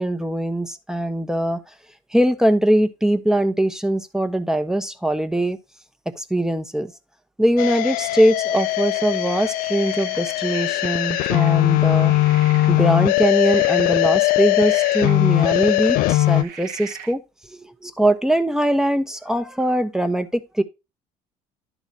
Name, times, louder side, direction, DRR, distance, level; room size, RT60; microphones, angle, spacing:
voice 1, 0.0-1.6 2.1-5.6 6.2-6.9 7.4-12.1 12.7-17.2 17.5-20.6, right 1 dB, 5° right, 1.1 m, -21 dB
sound 1, 7.6-16.4, left 18 dB, 70° left, 0.4 m, -20 dB
sound 2, 8.5-17.1, right 9 dB, 75° right, 1.1 m, -40 dB
11.5 x 4.0 x 4.2 m
cardioid pair, 105°, 15 cm